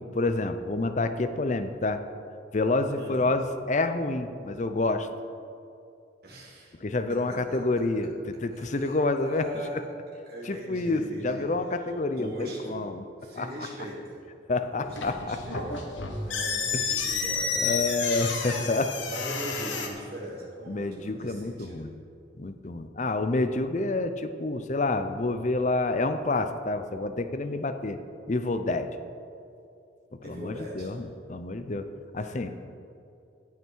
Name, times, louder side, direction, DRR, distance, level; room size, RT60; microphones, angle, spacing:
voice 1, 0.1-2.0 2.5-5.1 6.8-8.1 8.4-9.4 10.5-13.0 13.4-13.5 14.5-15.4 17.5-18.9 20.7-21.9 22.4-28.0 28.3-28.9 30.2-31.9 32.1-32.5, left 2 dB, 40° left, 9 dB, 0.5 m, -28 dB
voice 2, 2.9-3.3 6.2-6.8 7.1-7.6 8.5-9.9 10.3-12.9 13.2-14.2 14.7-15.9 16.2-18.7 19.1-21.9 30.2-30.9 32.2-32.4, right 1 dB, 50° right, -5 dB, 3.0 m, -41 dB
sound 1, 14.8-19.9, left 5 dB, 80° left, 1.2 m, -30 dB
17.0 x 5.8 x 4.6 m, 2.6 s
head